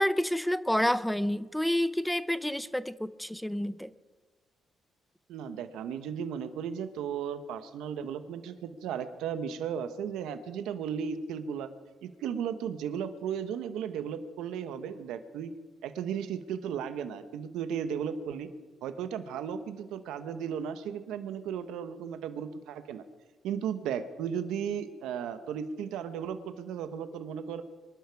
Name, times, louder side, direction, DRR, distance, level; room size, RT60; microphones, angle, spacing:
voice 1, 0.0-3.9, equal, 5° left, 15 dB, 0.7 m, -29 dB
voice 2, 5.3-11.7 12.0-15.5 15.8-18.5 18.8-23.0 23.4-27.6, right 8 dB, 90° right, 10 dB, 1.1 m, -35 dB
24.5 x 12.0 x 4.7 m, 1.4 s
cardioid pair, 90°, 0 cm